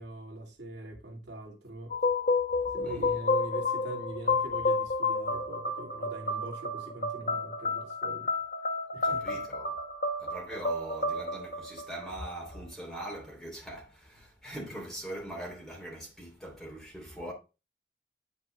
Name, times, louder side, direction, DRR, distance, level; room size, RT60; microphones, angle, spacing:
voice 1, 0.0-2.0 2.7-8.3 8.9-9.4, right 1 dB, 70° right, 1.9 m, -42 dB
sound 1, 1.9-12.6, left 3 dB, 45° left, 1.1 m, -31 dB
voice 2, 2.8-3.2 9.0-9.8 10.2-17.3, right 1 dB, ahead, 2.7 m, -42 dB
9.0 x 4.6 x 3.2 m
head